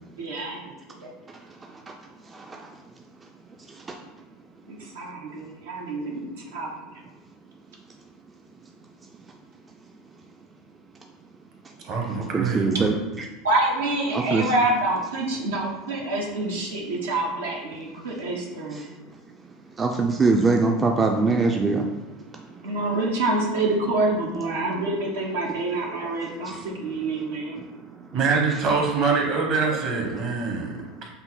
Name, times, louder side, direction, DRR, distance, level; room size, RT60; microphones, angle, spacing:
voice 1, 0.2-0.6 4.6-6.9 13.4-18.9 22.6-27.6, right 2 dB, 80° right, -2 dB, 0.8 m, -27 dB
voice 2, 2.3-2.7 3.7-4.0 12.3-12.9 14.1-14.5 19.8-21.9 22.3-22.4 26.4-26.6 27.8-28.1 30.8-30.9, right 3 dB, 25° right, 1 dB, 0.4 m, -23 dB
voice 3, 11.8-12.9 28.1-30.7 31.0-31.1, right 4 dB, 50° right, 1 dB, 1.1 m, -24 dB
5.6 x 2.1 x 4.0 m, 1.1 s
hypercardioid pair, 85°, 0 cm